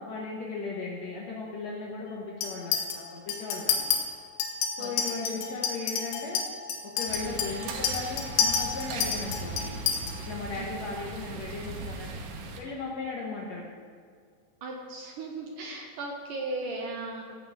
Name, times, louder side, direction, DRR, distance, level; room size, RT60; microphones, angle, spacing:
voice 1, 0.0-3.9 4.8-6.4 6.8-9.8 10.2-12.1 12.6-13.7, left 4 dB, 65° left, -4 dB, 1.7 m, -37 dB
Chink clink, 2.4-3.0 3.3-4.0 4.4-10.1, left 6 dB, 85° left, 3.3 m, -29 dB
sound 1, 7.1-12.6, right 3 dB, 85° right, 3.3 m, -39 dB
voice 2, 10.5-10.8 14.6-17.2, right 2 dB, 70° right, 0 dB, 2.3 m, -37 dB
15.5 x 5.9 x 7.6 m, 2.1 s
omnidirectional pair, 4.6 m